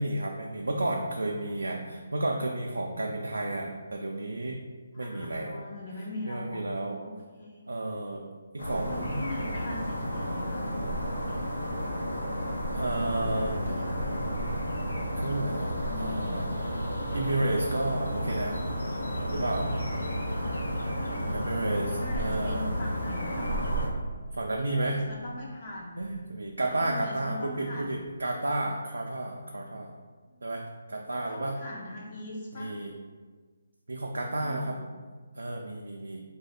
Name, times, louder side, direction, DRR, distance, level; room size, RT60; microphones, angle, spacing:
voice 1, 0.0-4.6 5.0-5.6 6.3-7.0 7.7-8.2 8.5-9.2 11.3-11.4 12.7-13.5 15.2-15.7 16.0-16.5 17.1-18.6 19.3-19.7 21.3-22.7 24.3-25.0 26.0-29.9 30.4-30.6 30.9-31.6 32.5-32.9 33.9-34.8 35.3-36.2, right 2 dB, 85° right, 0 dB, 0.3 m, -31 dB
voice 2, 4.9-7.6 8.8-10.7 12.8-13.9 15.5-16.4 20.8-21.4 21.7-23.7 24.5-26.0 26.6-27.9 30.3-30.4 31.1-32.8 34.3-34.8, left 1 dB, 40° left, -4 dB, 0.5 m, -41 dB
sound 1, 8.6-23.9, equal, 90° left, 0.5 m, -32 dB
sound 2, 22.7-28.1, equal, 60° left, 0.9 m, -47 dB
2.7 x 2.2 x 3.9 m, 1.4 s
figure-of-eight pair, 150°, 0 cm